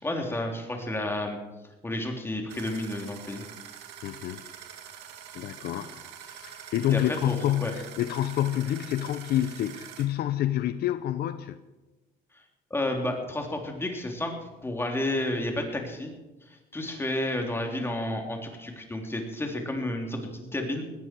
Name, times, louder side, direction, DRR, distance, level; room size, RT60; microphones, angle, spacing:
voice 1, 0.0-1.4 1.8-3.4 6.9-7.7 12.3-12.4 12.7-14.3 14.6-16.1 16.5-20.8, left 1 dB, 15° left, 3.5 m, -31 dB
sound 1, 2.5-10.1, right 9 dB, 90° right, 2.4 m, -45 dB
voice 2, 4.0-4.4 5.3-11.6, left 12 dB, 70° left, 0.8 m, -28 dB
20.0 x 14.5 x 4.7 m
cardioid pair, 110°, 17 cm